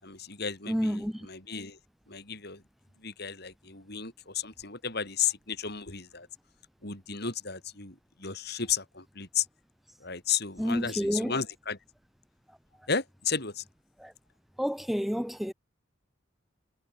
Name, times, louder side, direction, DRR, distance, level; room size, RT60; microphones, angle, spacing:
voice 1, 0.0-1.8 2.1-2.6 3.0-6.3 6.8-9.5 10.0-11.8 12.9-13.6, left 7 dB, 55° left, 6.9 m, -33 dB
voice 2, 0.7-1.3 10.6-11.3 14.0-14.1 14.6-15.5, equal, ahead, 0.9 m, -29 dB
head